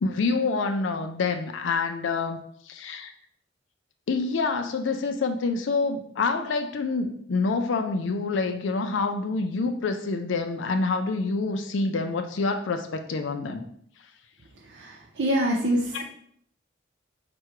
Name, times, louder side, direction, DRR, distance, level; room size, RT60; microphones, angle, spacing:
voice 1, 0.0-2.4 2.7-3.1 4.1-13.6 15.9-16.0, left 4 dB, 80° left, 6 dB, 0.4 m, -27 dB
voice 2, 14.6-16.0, equal, 65° right, -1 dB, 0.6 m, -26 dB
4.5 x 2.2 x 4.7 m, 0.66 s
head